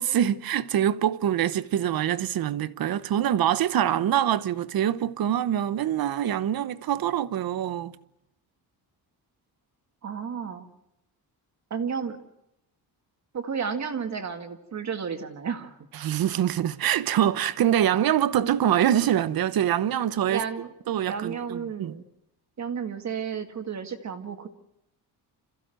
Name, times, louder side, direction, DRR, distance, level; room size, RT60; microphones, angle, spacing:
voice 1, 0.0-7.9 16.0-20.4 20.9-21.9, right 10 dB, 60° right, 1.0 m, -24 dB
voice 2, 10.0-10.7 11.7-12.2 13.3-15.8 20.3-20.7 21.1-22.0 22.6-24.5, right 6 dB, 45° right, 2.0 m, -32 dB
28.0 x 15.0 x 7.8 m
cardioid pair, 155°, 40 cm